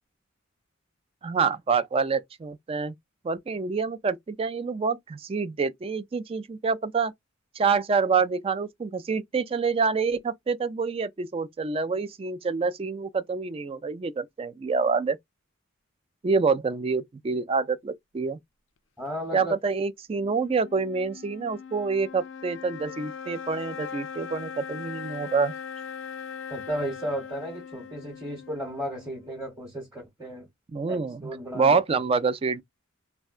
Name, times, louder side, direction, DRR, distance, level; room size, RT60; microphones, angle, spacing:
voice 1, 1.2-2.9 3.2-7.1 7.6-15.2 16.2-18.4 19.3-25.5 30.7-31.2 31.5-32.6, right 5 dB, 30° right, 0.3 m, -27 dB
voice 2, 19.0-19.5 26.5-30.5 30.9-31.8, equal, 10° right, 1.0 m, -34 dB
sound 1, 20.2-29.6, left 6 dB, 65° left, 0.4 m, -40 dB
3.5 x 2.1 x 2.3 m
head